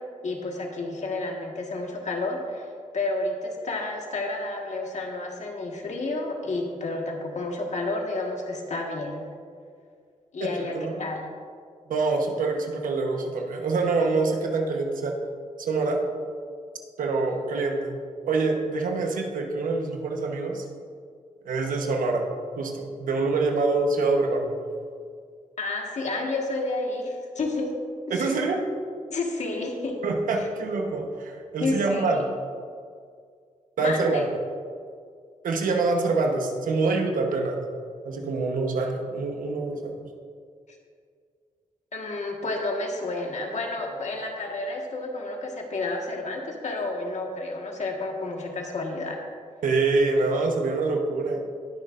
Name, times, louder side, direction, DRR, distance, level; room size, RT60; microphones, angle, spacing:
voice 1, 0.0-2.7 2.9-9.2 10.3-11.2 25.6-27.7 28.1-28.3 29.1-30.0 30.4-30.5 31.6-32.2 33.8-34.2 41.9-49.2, left 2 dB, 60° left, 1 dB, 1.6 m, -30 dB
voice 2, 10.6-11.1 11.9-15.1 15.6-16.0 17.0-18.0 18.3-20.6 21.4-22.2 22.6-24.5 28.1-28.6 30.0-32.2 33.8-34.2 35.4-37.6 38.0-40.0 43.9-44.0 49.6-51.4, right 3 dB, 90° right, 2 dB, 1.1 m, -25 dB
19.5 x 6.6 x 2.6 m, 2.2 s
cardioid pair, 70°, 14 cm